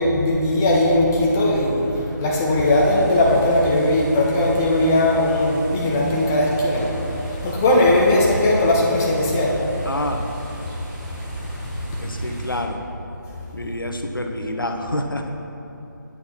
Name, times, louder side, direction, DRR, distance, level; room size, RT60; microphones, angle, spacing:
voice 1, 0.0-6.9 7.3-9.7, left 1 dB, 10° left, -4 dB, 0.3 m, -19 dB
sound 1, 2.6-12.6, equal, 5° right, 1.3 m, -33 dB
voice 2, 9.9-10.2 12.0-12.8 13.5-15.3, left 1 dB, 90° left, 4 dB, 0.8 m, -27 dB
8.5 x 5.9 x 4.2 m, 3.0 s
figure-of-eight pair, 155°, 11 cm